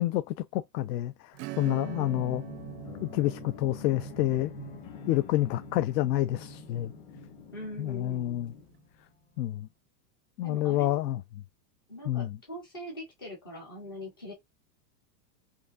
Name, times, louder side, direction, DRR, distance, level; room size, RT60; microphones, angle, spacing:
voice 1, 0.0-2.4 3.0-4.5 5.1-6.9 7.8-8.5 9.4-9.7 10.4-11.2 12.1-12.4, left 14 dB, 80° left, 0.6 m, -28 dB
Acoustic guitar / Strum, 1.3-7.6, right 16 dB, 85° right, 0.7 m, -45 dB
voice 2, 1.6-2.2 7.5-8.4 10.4-11.0 11.9-14.3, equal, 15° left, 0.3 m, -42 dB
sound 1, 1.8-9.4, left 4 dB, 40° left, 1.3 m, -45 dB
4.6 x 2.6 x 2.4 m
supercardioid pair, 180°, 49 cm